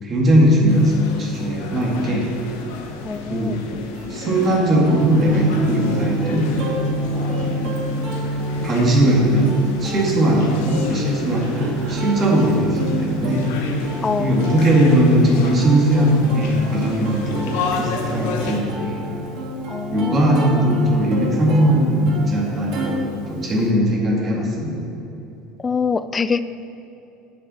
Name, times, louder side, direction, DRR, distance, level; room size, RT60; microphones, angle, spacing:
voice 1, 0.0-2.3 3.3-3.6 4.1-6.5 7.1-7.6 8.6-13.5 14.2-19.0 19.9-24.8, equal, 35° right, -3 dB, 1.9 m, -19 dB
sound 1, 0.7-18.6, left 4 dB, 85° left, 1.1 m, -32 dB
voice 2, 3.0-3.6 7.6-7.7 14.0-14.4 19.7-20.6 25.6-26.4, left 5 dB, 20° left, 14 dB, 0.3 m, -24 dB
Plucked string instrument, 3.9-22.9, equal, 60° right, 2.3 m, -32 dB
Gong, 5.0-23.7, right 1 dB, 75° right, 1.1 m, -30 dB
8.7 x 6.6 x 5.5 m, 2.9 s
supercardioid pair, 120°, 0 cm